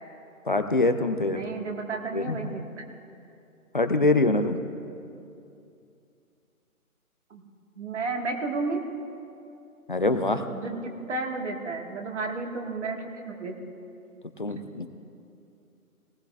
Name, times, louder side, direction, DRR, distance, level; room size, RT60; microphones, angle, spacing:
voice 1, 0.5-1.4 2.1-2.6 3.7-4.6 9.9-10.4 14.4-14.9, left 2 dB, 35° left, 9 dB, 0.5 m, -24 dB
voice 2, 1.3-2.6 2.9-3.0 7.3-7.4 7.8-8.8 10.5-13.5, right 3 dB, 50° right, 2 dB, 1.8 m, -32 dB
20.0 x 18.5 x 2.5 m, 2.6 s
figure-of-eight pair, 160°, 44 cm